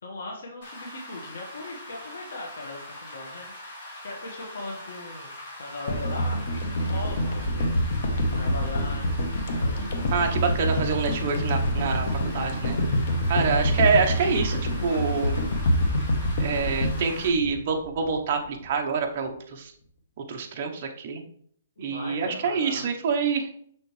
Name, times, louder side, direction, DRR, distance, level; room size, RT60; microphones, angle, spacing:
voice 1, 0.0-5.3 5.6-7.7 8.3-9.1 9.6-10.0 13.5-13.9 21.8-22.9, left 2 dB, 75° left, 0 dB, 1.7 m, -39 dB
Rain, 0.6-17.3, left 1 dB, 30° left, 2.8 m, -42 dB
sound 1, 5.9-18.2 18.5-18.6, equal, 45° left, 1.1 m, -26 dB
voice 2, 10.1-12.1 12.3-12.8 13.3-15.4 16.4-19.7 20.3-21.2 21.8-23.5, right 5 dB, 35° right, 2 dB, 0.9 m, -26 dB
6.3 x 6.2 x 3.2 m, 0.63 s
hypercardioid pair, 175°, 0 cm